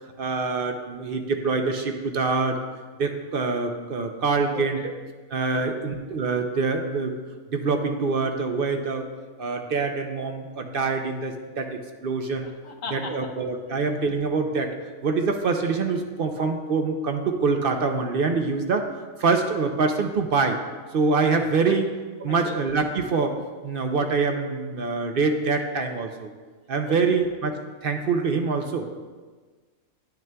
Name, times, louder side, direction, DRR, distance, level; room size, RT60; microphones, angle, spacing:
voice 1, 0.2-2.6 3.0-4.9 5.3-7.2 7.5-9.1 9.4-12.5 12.9-14.7 15.0-18.9 19.2-20.6 20.9-21.9 22.2-23.4 23.6-26.3 26.7-27.5 27.8-28.9, right 4 dB, 55° right, 5 dB, 0.6 m, -25 dB
voice 2, 4.5-4.9 5.5-5.8 12.4-13.3 13.7-13.8 21.6-21.8 22.3-22.6 26.8-27.0, left 5 dB, 70° left, 3 dB, 1.1 m, -38 dB
10.5 x 9.2 x 2.2 m, 1.4 s
omnidirectional pair, 1.5 m